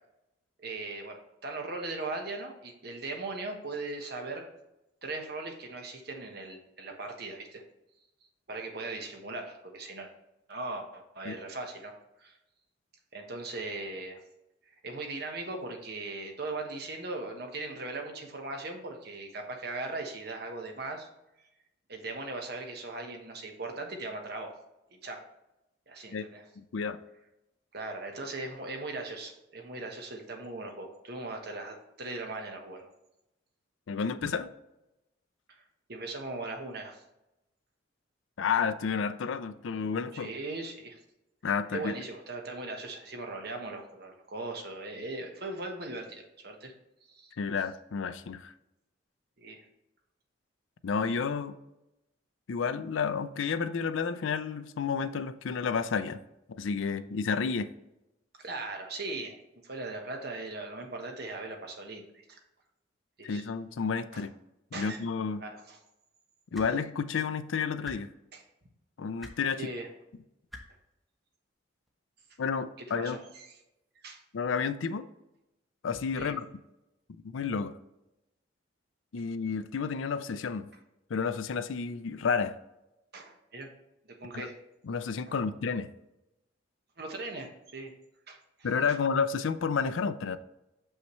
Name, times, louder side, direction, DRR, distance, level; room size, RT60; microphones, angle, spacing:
voice 1, 0.6-4.5 5.0-7.6 8.5-10.1 10.5-11.9 12.2-12.4 13.1-14.2 14.8-21.1 21.9-24.6 25.0-25.2 25.9-26.4 27.7-32.9 35.5-35.6 35.9-37.0 40.1-41.0 41.7-46.7 47.1-47.3 49.4-49.6 58.4-59.4 59.6-62.4 63.2-63.4 64.1-64.2 64.7-65.0 65.4-65.8 68.3-68.4 69.6-69.9 72.8-73.4 74.0-74.2 76.2-76.4 83.1-83.7 84.2-84.5 87.0-87.9 88.3-88.4 88.9-89.0, right 2 dB, 55° right, 1.1 m, -39 dB
voice 2, 26.6-27.0 33.9-34.5 38.4-40.3 41.4-41.9 47.4-48.5 50.8-51.6 52.5-56.2 56.6-57.7 63.2-64.3 64.8-65.4 66.5-68.1 69.0-69.7 72.4-73.2 74.3-75.1 75.8-76.5 77.3-77.7 79.1-80.7 81.1-82.6 84.3-84.5 84.8-85.9 88.6-90.4, left 5 dB, 85° left, 0.4 m, -31 dB
sound 1, 66.5-66.7 67.8-68.0 69.2-69.4 70.5-70.6 71.9-72.0, left 1 dB, ahead, 0.9 m, -44 dB
6.5 x 5.6 x 3.1 m
head